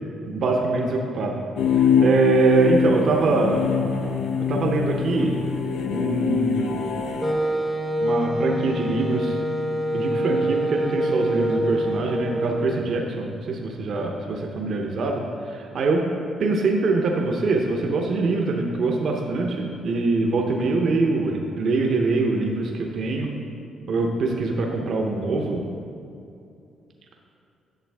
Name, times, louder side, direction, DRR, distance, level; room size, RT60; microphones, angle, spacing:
voice 1, 0.3-1.4 1.7-3.6 4.5-5.3 5.9-6.8 8.0-9.4 9.9-16.1 16.4-23.3 23.9-25.7, right 3 dB, 60° right, 1 dB, 0.8 m, -23 dB
sound 1, 1.6-7.3, left 6 dB, 80° left, 0.6 m, -24 dB
Wind instrument woodwind instrument, 7.2-12.9, equal, ahead, 0.7 m, -25 dB
9.0 x 6.7 x 3.5 m, 2.6 s
cardioid pair, 90°, 0 cm